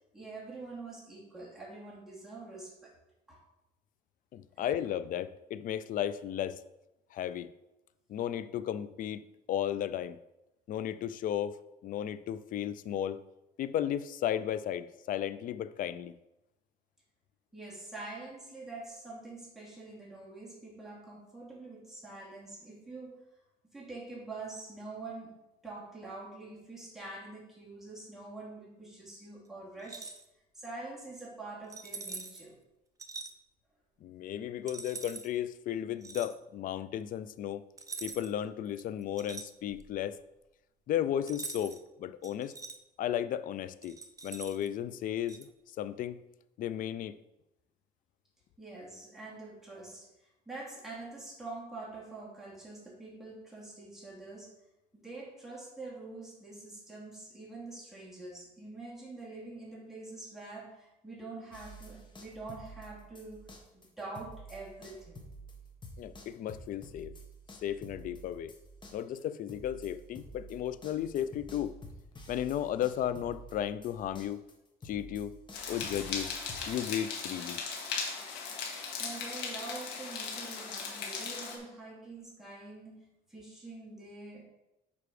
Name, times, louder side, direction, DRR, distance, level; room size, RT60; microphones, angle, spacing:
voice 1, 0.1-2.9 3.3-3.4 17.5-23.2 23.7-25.4 25.6-30.2 30.5-32.5 48.6-50.1 50.5-54.5 54.9-63.4 63.7-65.3 79.0-83.0 83.3-84.4, right 3 dB, ahead, -6 dB, 2.6 m, -45 dB
voice 2, 4.3-6.6 7.1-7.5 8.1-9.2 9.5-10.2 10.7-13.2 13.6-16.1 34.0-37.6 38.0-40.2 40.9-42.5 43.0-43.9 44.2-45.5 45.8-46.2 46.6-47.2 66.0-67.1 67.6-68.5 68.9-71.8 72.3-74.4 74.8-75.4 75.7-76.3 76.7-77.6, left 10 dB, 55° left, 14 dB, 0.4 m, -34 dB
sound 1, 29.8-30.2 31.7-32.5 33.0-33.3 34.7-35.3 36.0-36.3 37.8-38.4 38.7-39.9 41.3-41.8 42.2-42.8 43.8-44.7 45.3-45.5, right 4 dB, 20° right, 0.6 m, -43 dB
sound 2, 61.5-63.9 64.2-76.6, right 1 dB, 25° left, 1.3 m, -50 dB
sound 3, 75.5-81.6, left 5 dB, 85° left, 1.7 m, -38 dB
6.9 x 4.8 x 4.9 m, 0.93 s
cardioid pair, 110°, 17 cm